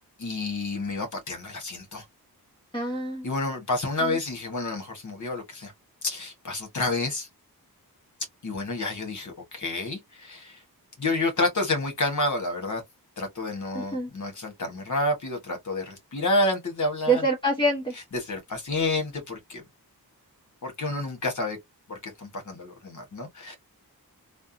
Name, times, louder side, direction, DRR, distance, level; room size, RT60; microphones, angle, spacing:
voice 1, 0.2-2.0 3.2-5.7 6.0-7.3 8.4-10.6 11.0-12.8 13.2-17.2 18.1-19.6 20.6-21.6 21.9-23.5, left 2 dB, 50° left, 1.4 m, -29 dB
voice 2, 2.7-3.3 4.0-4.2 13.7-14.1 17.1-17.9, right 2 dB, 15° left, 0.9 m, -25 dB
3.4 x 2.2 x 2.6 m
wide cardioid pair, 175°, 38 cm